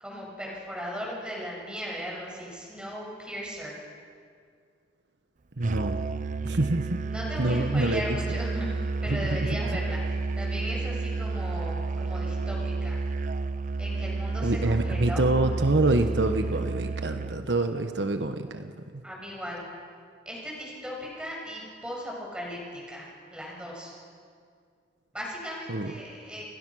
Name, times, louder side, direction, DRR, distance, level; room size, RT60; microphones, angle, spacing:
voice 1, 0.0-3.7 7.0-13.0 13.8-15.3 19.0-19.6 20.3-23.9 25.1-26.4, equal, 5° right, -3 dB, 7.6 m, -37 dB
Musical instrument, 5.6-17.5, right 3 dB, 45° right, 0.5 m, -31 dB
voice 2, 5.6-6.1 6.4-7.0 7.4-8.2 9.1-9.4 14.4-18.7 25.7-25.9, right 2 dB, 75° right, 7 dB, 1.2 m, -26 dB
29.5 x 23.5 x 6.3 m, 2.2 s
head